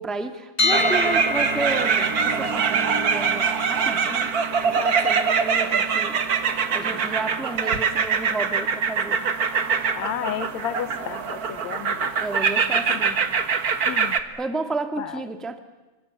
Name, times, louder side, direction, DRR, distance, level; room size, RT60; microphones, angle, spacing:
voice 1, 0.0-4.3 4.7-6.2 6.7-9.2 12.2-13.3 14.4-15.6, right 3 dB, ahead, 7 dB, 0.7 m, -32 dB
sound 1, 0.6-12.5, left 2 dB, 20° left, 2.4 m, -33 dB
sound 2, 0.7-14.2, right 6 dB, 50° right, 1.1 m, -23 dB
voice 2, 9.9-12.1 12.9-13.1 13.8-14.2 15.0-15.2, left 10 dB, 65° left, 14 dB, 2.1 m, -32 dB
26.5 x 26.0 x 8.3 m, 1.1 s
omnidirectional pair, 3.8 m